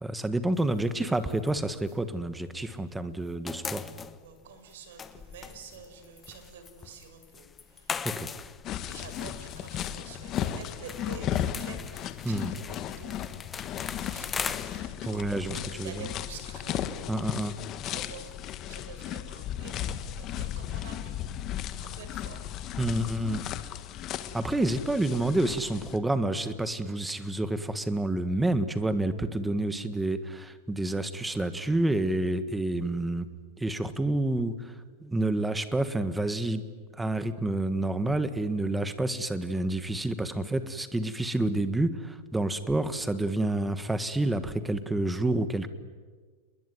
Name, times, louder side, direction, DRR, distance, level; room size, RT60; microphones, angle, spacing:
voice 1, 0.0-3.9 8.0-8.3 12.2-12.5 15.1-15.9 17.1-17.5 22.8-23.5 24.3-33.3 33.6-34.7 35.0-36.7 37.0-45.7, right 2 dB, 5° right, 11 dB, 1.4 m, -29 dB
sound 1, 0.6-2.8 3.1-18.5, left 6 dB, 15° left, 1.0 m, -41 dB
voice 2, 4.2-8.0 8.8-13.2 13.8-21.2 21.8-22.8, right 5 dB, 75° right, 8 dB, 6.3 m, -48 dB
sound 2, 8.6-26.0, left 11 dB, 30° left, 1.4 m, -35 dB
30.0 x 21.5 x 9.4 m, 1.5 s
supercardioid pair, 160°, 0 cm